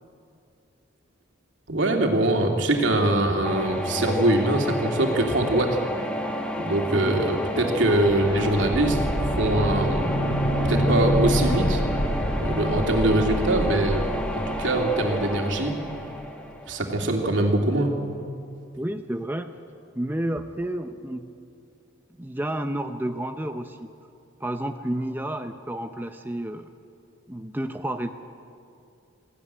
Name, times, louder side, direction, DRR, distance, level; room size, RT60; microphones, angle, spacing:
voice 1, 1.7-5.8 6.6-10.1 10.6-11.8 12.4-15.7 16.7-17.9, right 1 dB, 70° right, 2 dB, 2.8 m, -23 dB
sound 1, 3.4-17.3, equal, 5° left, 1.7 m, -31 dB
voice 2, 6.9-7.2 18.8-19.5 19.9-21.3 22.2-23.9 24.4-26.7 27.3-28.1, right 1 dB, 10° right, 6 dB, 0.6 m, -30 dB
sound 2, 7.9-15.6 15.9-16.0, equal, 70° left, 5.5 m, -27 dB
20.0 x 15.5 x 9.9 m, 2.5 s
head